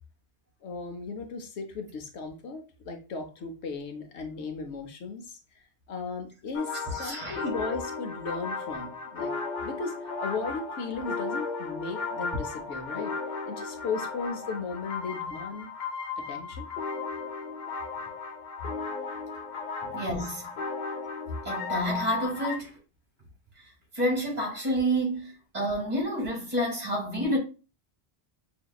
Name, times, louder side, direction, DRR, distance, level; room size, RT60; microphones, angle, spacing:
voice 1, 0.6-5.6 5.9-9.3 9.6-13.1 13.5-15.7 16.2-16.7, left 4 dB, 90° left, 1.1 m, -36 dB
sound 1, 6.5-22.6, left 4 dB, 50° left, 0.7 m, -35 dB
voice 2, 6.7-7.4 19.9-20.5 21.4-22.7 23.9-27.4, equal, 40° right, 2.2 m, -29 dB
5.9 x 2.8 x 2.2 m
omnidirectional pair, 1.1 m